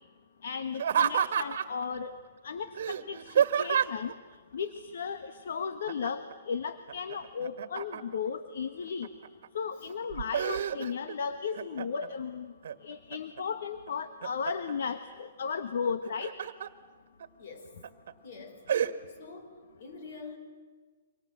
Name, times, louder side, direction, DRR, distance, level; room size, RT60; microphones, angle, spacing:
voice 1, 0.4-2.2 2.4-4.1 4.5-9.1 9.5-12.5 12.8-16.3, left 6 dB, 70° left, 9 dB, 1.5 m, -35 dB
Laughter, 0.7-1.8 2.8-4.1 5.9-6.3 6.7-8.3 8.8-9.5 9.9-11.2 11.5-12.1 12.6-13.4 13.9-14.7 15.9-16.7 17.2-17.3 17.8-18.1 18.7-18.9, right 8 dB, 60° right, 1.6 m, -30 dB
voice 2, 17.4-17.7 18.2-18.7 19.1-20.4, left 4 dB, 50° left, 6 dB, 5.6 m, -46 dB
29.0 x 25.5 x 7.6 m, 1.5 s
hypercardioid pair, 165°, 0 cm